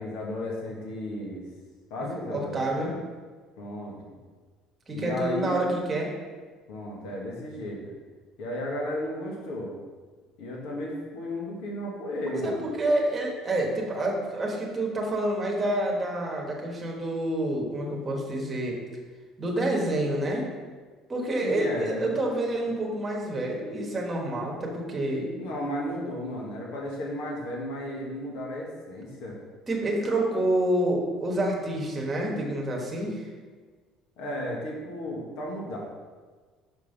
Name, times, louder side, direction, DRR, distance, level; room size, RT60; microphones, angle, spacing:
voice 1, 0.0-1.4 1.9-3.0 3.6-4.0 4.9-5.7 6.7-7.8 8.4-9.7 10.4-12.7 21.4-22.2 25.4-29.4 34.2-35.8, left 1 dB, 80° left, -2 dB, 1.8 m, -34 dB
voice 2, 2.3-2.9 4.9-6.1 12.4-18.8 19.4-20.5 21.1-25.3 29.7-33.3, right 1 dB, 15° right, -1 dB, 1.3 m, -28 dB
6.1 x 5.4 x 5.5 m, 1.4 s
cardioid pair, 175°, 0 cm